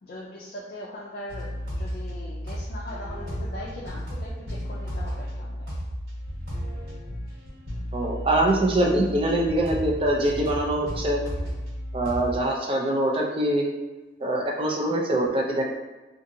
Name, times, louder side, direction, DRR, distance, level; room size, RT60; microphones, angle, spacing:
voice 1, 0.0-5.7, left 1 dB, 55° left, -4 dB, 0.4 m, -40 dB
sound 1, 1.3-12.4, equal, 90° right, 1.4 m, -33 dB
voice 2, 7.9-11.2 11.9-13.6 14.2-15.7, right 1 dB, 30° right, -2 dB, 0.4 m, -24 dB
2.7 x 2.4 x 2.6 m, 1.2 s
head